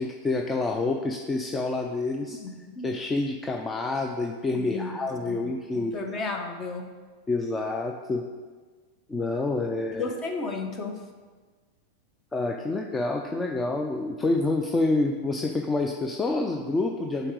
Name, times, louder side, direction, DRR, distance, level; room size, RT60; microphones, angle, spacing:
voice 1, 0.0-2.4 2.8-6.0 7.3-8.3 9.1-10.1 12.3-17.3, left 2 dB, 15° left, 3 dB, 0.5 m, -28 dB
voice 2, 2.4-2.9 4.6-4.9 5.2-5.4 5.7-6.9 9.9-11.0, left 3 dB, 35° left, 4 dB, 1.1 m, -33 dB
7.7 x 4.0 x 4.7 m, 1.4 s
hypercardioid pair, 110°, 0 cm